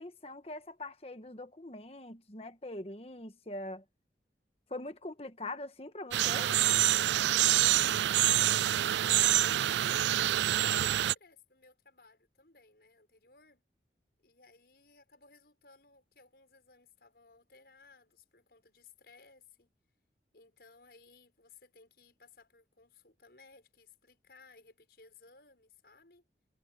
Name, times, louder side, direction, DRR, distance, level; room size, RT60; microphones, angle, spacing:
voice 1, 0.0-3.8 4.7-6.6, left 2 dB, 35° left, 1.4 m, -42 dB
sound 1, 6.1-11.1, right 13 dB, 85° right, 0.3 m, -26 dB
voice 2, 7.9-9.1 9.6-13.6 14.2-19.7 20.3-26.2, left 4 dB, 65° left, 6.4 m, -60 dB
head